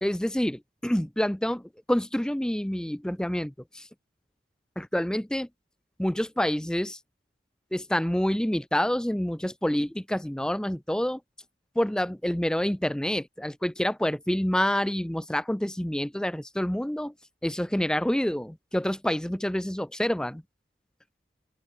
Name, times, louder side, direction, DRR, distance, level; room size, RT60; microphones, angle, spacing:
voice 1, 0.0-3.9 4.8-5.5 6.0-7.0 7.7-11.2 11.8-17.1 17.4-20.4, equal, 5° left, 0.4 m, -27 dB
head